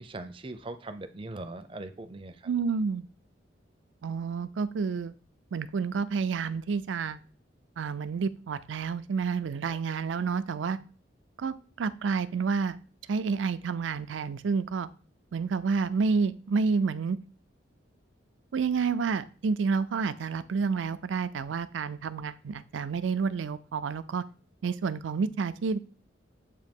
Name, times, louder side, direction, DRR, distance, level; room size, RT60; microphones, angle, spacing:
voice 1, 0.0-2.5 9.6-9.8, right 2 dB, 30° right, 10 dB, 0.5 m, -41 dB
voice 2, 2.5-3.1 4.0-5.1 5.5-7.2 7.8-10.8 11.4-12.8 13.1-14.9 15.3-17.2 18.5-24.2 24.6-25.8, right 5 dB, 85° right, 13 dB, 0.4 m, -29 dB
7.6 x 2.7 x 5.2 m, 0.38 s
head